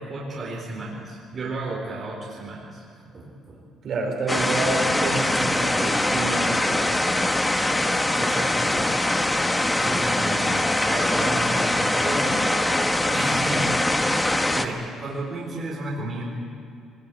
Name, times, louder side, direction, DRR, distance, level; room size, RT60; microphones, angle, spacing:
voice 1, 0.0-2.8 3.1-3.6 8.1-8.9 9.8-10.5 10.7-12.5 13.1-13.8 14.5-16.2, right 2 dB, 30° right, -3 dB, 4.2 m, -33 dB
voice 2, 3.8-7.0, right 3 dB, 50° right, 1 dB, 4.9 m, -28 dB
sound 1, 4.3-14.7, left 1 dB, 10° left, 1.1 m, -22 dB
23.5 x 20.5 x 9.0 m, 2.3 s
cardioid pair, 165°, 0 cm